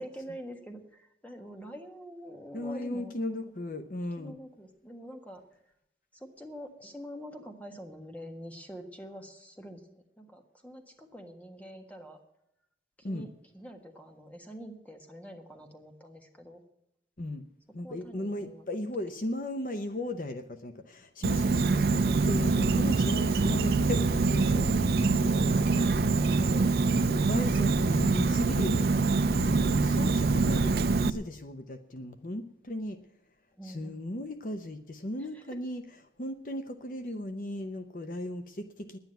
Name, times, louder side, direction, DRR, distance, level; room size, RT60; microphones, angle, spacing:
voice 1, 0.0-3.2 4.2-5.4 6.1-12.2 13.0-13.3 13.5-16.6 17.8-18.6 25.4-26.7 33.6-34.0 35.3-35.4, equal, 10° left, 4 dB, 1.5 m, -46 dB
voice 2, 2.5-4.4 13.0-13.3 17.2-17.5 17.7-25.5 26.8-33.0 33.6-35.8 36.2-39.0, left 1 dB, 50° left, 8 dB, 0.8 m, -36 dB
Insect, 21.2-31.1, right 3 dB, 60° right, 0.5 m, -25 dB
10.5 x 9.5 x 9.0 m, 0.82 s
head